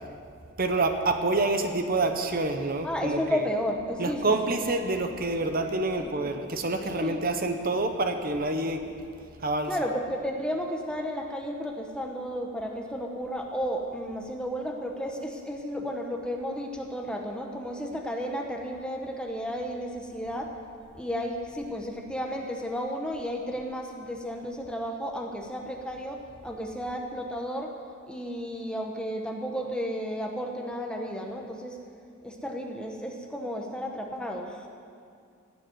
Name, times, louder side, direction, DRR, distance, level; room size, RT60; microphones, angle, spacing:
voice 1, 0.6-3.5 4.0-8.9 9.4-9.8, right 2 dB, 40° right, 6 dB, 1.0 m, -27 dB
voice 2, 2.8-4.2 7.0-7.2 9.7-20.5 21.0-27.7 28.1-31.7 32.2-34.5, equal, 5° left, 2 dB, 1.1 m, -33 dB
16.5 x 7.5 x 9.4 m, 2.3 s
head